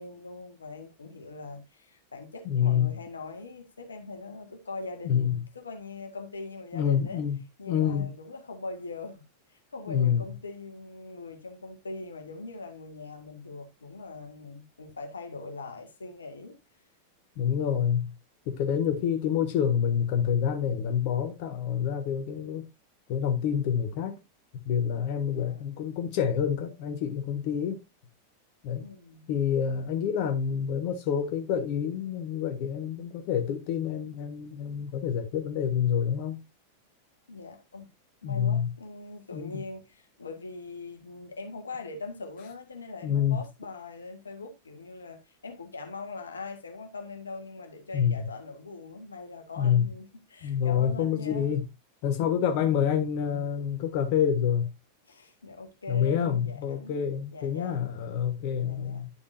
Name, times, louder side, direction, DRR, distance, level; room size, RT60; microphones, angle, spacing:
voice 1, 0.0-7.2 7.6-9.2 9.5-16.6 17.4-17.5 19.0-19.2 25.3-25.6 28.8-29.3 37.3-37.9 38.2-51.5 55.1-57.0 57.3-57.8 58.7-59.0, left 3 dB, 75° left, 1.8 m, -42 dB
voice 2, 2.4-3.0 5.0-5.4 6.7-7.4 7.7-8.1 9.9-10.2 17.4-18.1 18.5-22.7 23.1-24.2 24.5-27.8 28.6-28.9 29.3-36.4 38.2-38.7 39.3-39.6 43.0-43.4 47.9-48.2 49.6-49.8 50.4-51.6 52.0-54.7 55.9-59.1, left 8 dB, 45° left, 1.4 m, -27 dB
11.0 x 7.0 x 2.7 m
figure-of-eight pair, 90°, 0 cm